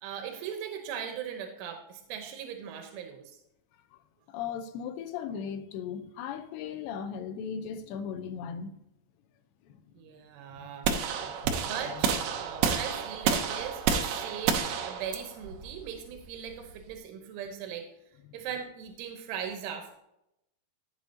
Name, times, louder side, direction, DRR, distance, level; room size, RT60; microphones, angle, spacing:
voice 1, 0.0-3.4 10.0-10.9 11.7-17.9 18.3-20.0, right 8 dB, 90° right, 3.4 m, -39 dB
voice 2, 4.3-8.8 9.6-9.8 10.5-10.7 11.2-11.7 12.4-12.5 18.3-18.4, left 7 dB, 80° left, 2.8 m, -38 dB
sound 1, 10.8-16.9, right 7 dB, 75° right, 2.4 m, -30 dB
12.0 x 8.0 x 2.8 m
omnidirectional pair, 5.4 m